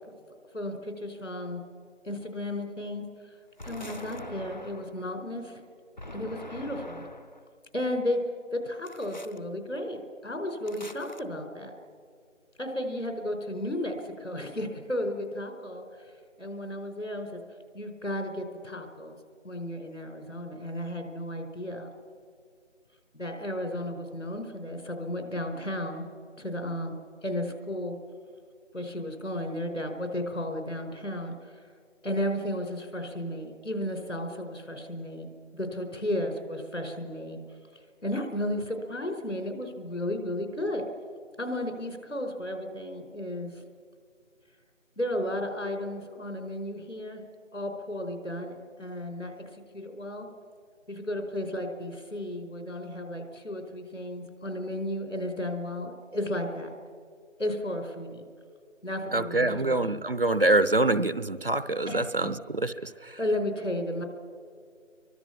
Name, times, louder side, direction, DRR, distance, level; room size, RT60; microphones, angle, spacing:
voice 1, 0.5-1.6 2.0-3.0 3.6-5.6 6.1-7.1 7.7-8.2 8.5-11.8 12.6-16.1 16.4-17.4 17.7-19.2 19.4-21.9 23.1-26.0 26.4-26.9 27.2-28.0 28.7-31.6 32.0-35.3 35.5-37.4 38.0-40.9 41.4-43.5 45.0-47.2 47.5-50.3 50.9-56.7 57.4-58.3 58.8-60.0 61.9-62.3 63.2-64.0, left 1 dB, 80° left, 5 dB, 4.7 m, -33 dB
sound 1, 3.6-5.1 6.0-7.4 8.8-9.4 10.7-11.2, left 1 dB, 35° left, 0.7 m, -43 dB
voice 2, 59.1-63.2, right 2 dB, 45° right, 15 dB, 0.7 m, -25 dB
29.0 x 24.0 x 6.0 m, 2.2 s
figure-of-eight pair, 165°, 38 cm